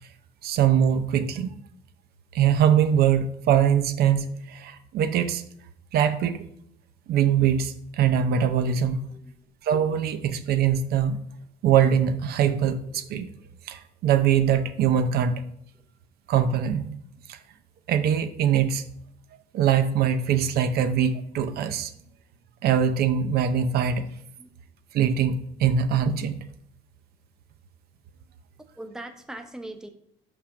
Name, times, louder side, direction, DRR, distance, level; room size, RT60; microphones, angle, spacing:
voice 1, 0.4-1.5 2.3-5.4 5.9-6.4 7.1-9.0 9.6-11.2 11.6-13.3 13.7-15.4 16.3-16.9 17.3-17.4 17.9-18.8 19.5-21.9 22.6-24.1 24.9-26.4, right 8 dB, 70° right, 9 dB, 0.7 m, -22 dB
voice 2, 8.8-9.3 24.4-24.5 28.8-29.9, right 1 dB, 5° right, 6 dB, 0.9 m, -40 dB
5.4 x 5.1 x 5.8 m, 0.68 s
cardioid pair, 110°, 17 cm